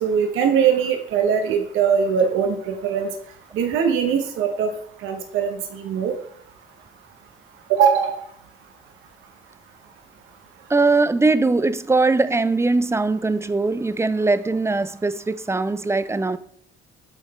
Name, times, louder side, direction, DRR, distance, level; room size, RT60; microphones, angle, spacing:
voice 1, 0.0-3.1 3.5-4.7 5.0-6.1 7.7-8.1, right 7 dB, 90° right, 0.8 m, -21 dB
voice 2, 10.7-16.4, right 3 dB, 15° right, 0.3 m, -21 dB
8.0 x 4.0 x 4.1 m
cardioid pair, 90°, 20 cm